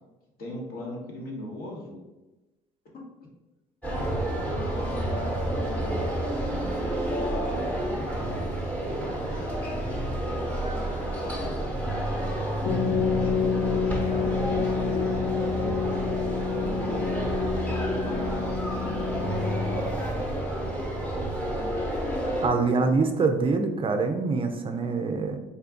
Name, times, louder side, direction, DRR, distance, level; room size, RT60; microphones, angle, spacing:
voice 1, 0.4-2.0 4.6-6.7 6.9-11.5 12.2-17.2 18.0-21.8 22.4-23.0, equal, 65° left, -3 dB, 1.4 m, -42 dB
sound 1, 3.8-22.5, right 1 dB, 10° left, 1.0 m, -30 dB
sound 2, 12.7-20.1, left 5 dB, 30° left, 0.5 m, -28 dB
voice 2, 22.4-25.4, right 4 dB, 30° right, 5 dB, 0.4 m, -25 dB
4.2 x 2.2 x 3.8 m, 1.1 s
cardioid pair, 110°, 17 cm